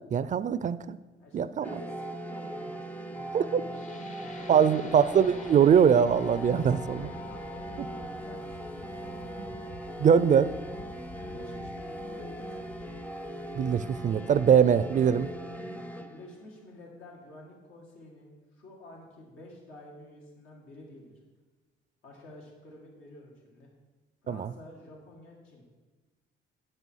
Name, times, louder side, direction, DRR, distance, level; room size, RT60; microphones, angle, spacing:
voice 1, 0.1-1.0 1.3-1.6 3.3-3.6 4.5-7.1 10.0-10.5 13.6-15.3 24.3-24.5, right 8 dB, 40° right, 15 dB, 0.4 m, -22 dB
voice 2, 1.2-4.9 7.2-9.3 11.2-12.7 15.4-15.6 16.0-21.1 22.0-23.7 24.2-25.6, left 1 dB, 85° left, -2 dB, 2.0 m, -50 dB
sound 1, 1.6-16.5, right 1 dB, 5° left, 0.6 m, -40 dB
sound 2, 3.7-11.8, left 6 dB, 40° left, 0.8 m, -49 dB
Wind, 6.2-15.3, left 4 dB, 55° left, 1.2 m, -50 dB
8.9 x 5.5 x 6.3 m, 1.2 s
cardioid pair, 90°, 20 cm